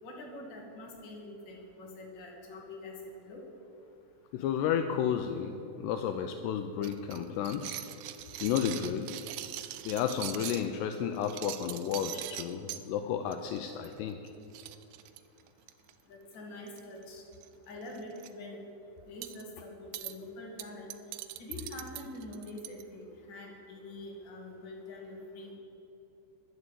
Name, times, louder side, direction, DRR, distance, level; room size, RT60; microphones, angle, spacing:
voice 1, 0.0-3.4 16.1-17.2 17.7-18.6 19.1-20.9 21.4-23.0 23.3-25.6, left 1 dB, 35° left, -1 dB, 2.1 m, -45 dB
voice 2, 4.3-7.8 8.4-9.1 9.9-14.2, left 8 dB, 85° left, 7 dB, 2.4 m, -32 dB
sound 1, 6.8-10.7 11.2-12.8 13.3-13.6 13.8-14.0 14.3-14.4 14.5-15.9 16.7-17.0 17.3-17.5 17.9-18.3 19.2-19.4 19.9-20.1 20.6-22.8, right 14 dB, 80° right, 2.8 m, -42 dB
11.0 x 11.0 x 8.3 m, 2.9 s
omnidirectional pair, 5.6 m